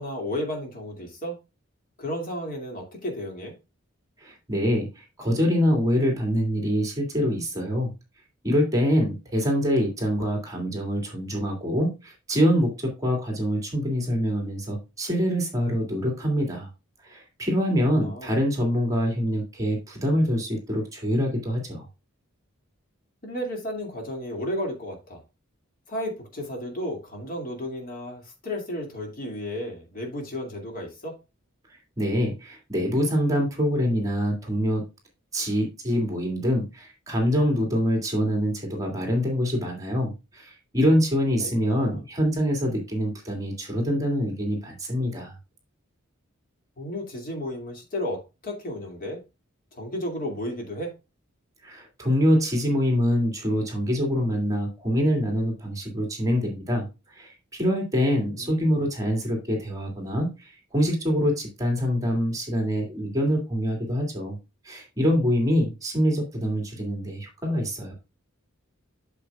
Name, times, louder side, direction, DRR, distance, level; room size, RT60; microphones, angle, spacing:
voice 1, 0.0-1.4 2.0-3.5 17.9-18.4 23.2-25.2 25.9-31.1 41.4-42.0 46.8-49.2 49.7-50.9 58.4-58.8, left 1 dB, 45° left, 2.4 m, -33 dB
voice 2, 4.2-7.9 8.4-16.7 17.0-21.9 31.7-34.8 35.3-45.3 51.6-64.4 64.6-67.9, equal, 15° right, 2.4 m, -25 dB
8.2 x 7.0 x 2.4 m
head